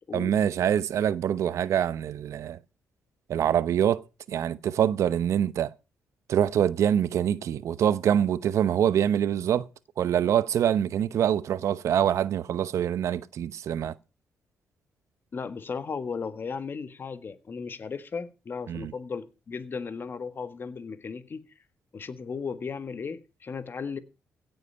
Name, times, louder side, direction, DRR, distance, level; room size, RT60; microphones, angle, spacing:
voice 1, 0.1-2.6 3.3-5.7 6.3-9.7 10.0-13.9 18.7-18.9, right 9 dB, 70° right, 0.9 m, -25 dB
voice 2, 15.3-21.4 21.9-24.0, left 5 dB, 40° left, 1.6 m, -35 dB
16.5 x 8.0 x 5.7 m
cardioid pair, 100°, 5 cm